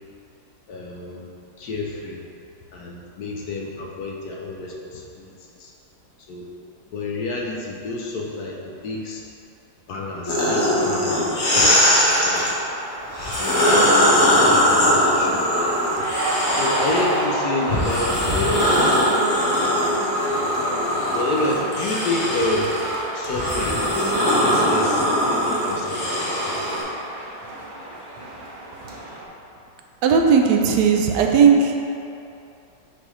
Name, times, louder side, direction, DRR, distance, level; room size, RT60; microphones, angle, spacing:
voice 1, 0.7-1.3 1.6-2.2 2.7-5.7 6.3-6.5 6.9-9.2 9.9-12.4 13.7-13.9 14.3-15.7 16.5-19.1 21.1-22.8 23.1-26.8, left 2 dB, 65° left, -2 dB, 1.1 m, -29 dB
sound 1, 10.3-12.5 13.1-17.2 17.7-26.8, equal, 45° left, 1.2 m, -20 dB
sound 2, 10.7-29.2, right 1 dB, 45° right, 0.6 m, -32 dB
voice 2, 30.0-31.7, right 6 dB, 75° right, 2 dB, 1.1 m, -16 dB
9.7 x 3.5 x 3.1 m, 2.7 s
omnidirectional pair, 2.0 m